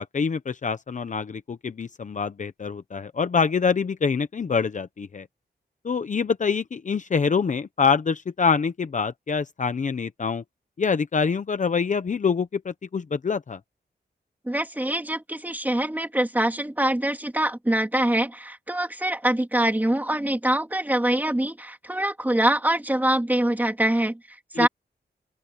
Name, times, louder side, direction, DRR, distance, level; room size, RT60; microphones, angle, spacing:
voice 1, 0.0-5.3 5.8-10.4 10.8-13.6 24.5-24.7, left 5 dB, 45° left, 0.8 m, -25 dB
voice 2, 14.5-24.2 24.6-24.7, right 1 dB, 10° right, 3.0 m, -24 dB
open air
wide cardioid pair, 145°, 18 cm